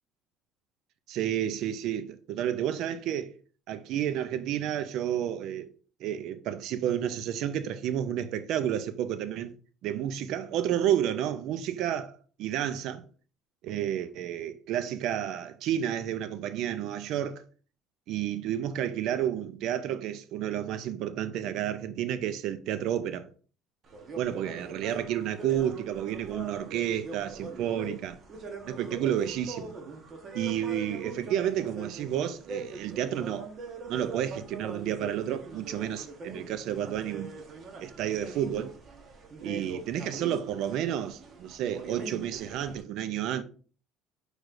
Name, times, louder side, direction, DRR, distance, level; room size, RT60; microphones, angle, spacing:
voice 1, 1.1-3.3 3.7-5.7 6.0-9.5 9.8-13.0 13.6-17.4 18.1-23.3 24.2-28.2 28.6-29.7 30.3-33.5 33.9-37.3 37.8-38.7 39.4-43.4, right 10 dB, 65° right, 0.4 m, -31 dB
sound 1, 23.8-42.8, right 3 dB, 40° right, 1.0 m, -43 dB
6.3 x 3.2 x 2.5 m
cardioid pair, 125°, 0 cm